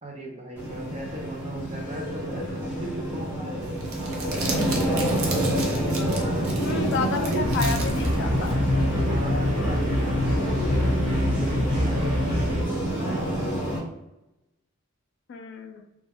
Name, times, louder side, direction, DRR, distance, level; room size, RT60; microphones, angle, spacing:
voice 1, 0.0-6.1 6.6-7.5 9.1-13.4, right 2 dB, 30° right, 0 dB, 0.6 m, -37 dB
sound 1, 0.6-13.8, right 1 dB, 10° right, 0.9 m, -28 dB
Crumpling crinkling, 3.6-8.7, right 3 dB, 75° right, 0.6 m, -36 dB
voice 2, 6.6-8.6 15.3-15.8, left 4 dB, 55° left, 5 dB, 0.3 m, -30 dB
sound 2, 7.4-12.6, left 1 dB, 55° right, 1.2 m, -25 dB
2.2 x 2.1 x 3.4 m, 0.95 s
head